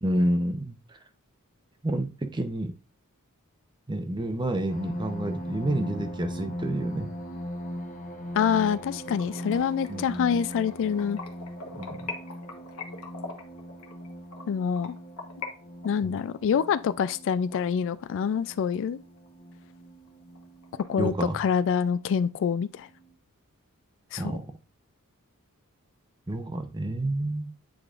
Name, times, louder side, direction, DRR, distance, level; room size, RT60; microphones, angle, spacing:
voice 1, 0.0-1.0 1.8-2.7 3.9-7.1 9.9-10.3 11.7-12.1 16.0-16.2 21.0-21.4 24.2-24.4 26.3-27.5, right 1 dB, 20° right, 0.7 m, -29 dB
sound 1, 4.7-21.7 22.4-22.5 22.9-23.1, equal, 35° left, 0.9 m, -40 dB
voice 2, 8.4-11.2 14.5-15.0 15.8-19.0 20.7-22.9 24.1-24.4, left 7 dB, 60° left, 0.3 m, -26 dB
sound 2, 9.0-15.5 15.8-18.3 18.7-18.8 19.3-19.4 19.7-19.8 20.1-20.8, left 4 dB, 75° left, 1.3 m, -42 dB
8.7 x 4.7 x 2.5 m
head